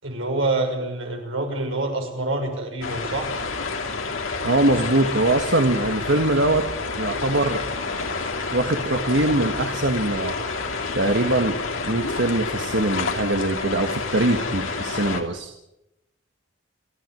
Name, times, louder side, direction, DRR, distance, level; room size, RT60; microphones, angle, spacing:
voice 1, 0.0-3.3, right 2 dB, 80° right, 2 dB, 6.4 m, -26 dB
sound 1, 2.8-15.2, left 4 dB, 90° left, 3.1 m, -29 dB
voice 2, 4.4-6.6 7.0-7.6 8.5-10.3 10.9-11.6 11.8-15.5, right 2 dB, 65° right, 6 dB, 1.5 m, -22 dB
29.5 x 11.5 x 9.2 m, 0.88 s
head